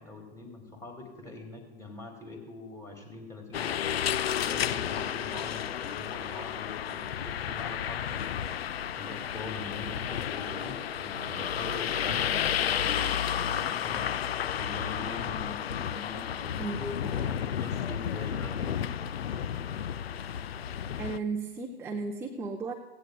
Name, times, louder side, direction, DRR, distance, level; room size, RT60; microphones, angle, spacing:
voice 1, 0.0-4.0 4.4-8.5 8.9-14.1 14.5-19.1, left 2 dB, 10° left, 3 dB, 2.2 m, -43 dB
sound 1, 3.5-21.2, left 9 dB, 70° left, 0.5 m, -32 dB
voice 2, 16.6-17.4 21.0-22.7, right 3 dB, 10° right, 3 dB, 0.5 m, -35 dB
17.5 x 15.5 x 2.3 m, 1.3 s
figure-of-eight pair, 110°, 32 cm